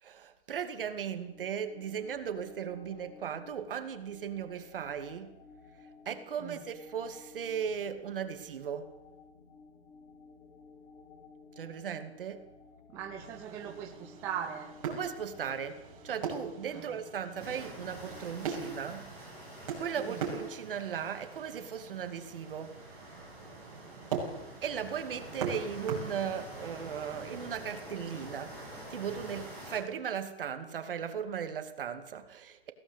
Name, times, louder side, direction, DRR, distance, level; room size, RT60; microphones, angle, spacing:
voice 1, 0.0-5.3 6.1-8.9 11.6-12.5 14.9-19.1 19.8-22.8 24.6-28.5 28.9-32.7, right 8 dB, 55° right, 9 dB, 2.6 m, -37 dB
sound 1, 0.8-18.4, left 4 dB, 75° left, 5.0 m, -56 dB
voice 2, 12.9-14.7 16.7-17.0 20.0-20.3, right 8 dB, 10° right, 1 dB, 0.8 m, -40 dB
sound 2, 13.2-27.7, right 6 dB, 35° right, 6.4 m, -42 dB
sound 3, 17.4-29.8, equal, 15° left, 6.8 m, -47 dB
22.0 x 17.0 x 8.3 m, 0.90 s
hypercardioid pair, 180°, 32 cm